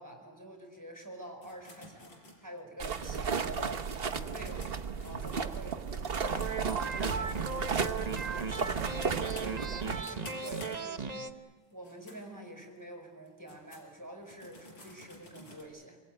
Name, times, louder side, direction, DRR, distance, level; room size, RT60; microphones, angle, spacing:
voice 1, 0.0-4.7 5.0-11.4 11.7-16.0, right 1 dB, 10° right, 3 dB, 5.1 m, -47 dB
sound 1, 1.4-6.1 6.4-11.2 11.7-12.2 12.6-12.7 13.3-15.6, left 1 dB, 60° left, 5.7 m, -52 dB
sound 2, 2.8-10.0, right 6 dB, 45° right, 0.8 m, -34 dB
sound 3, 6.2-11.3, right 5 dB, 60° right, 0.4 m, -37 dB
27.5 x 19.5 x 9.2 m, 1.4 s
omnidirectional pair, 2.4 m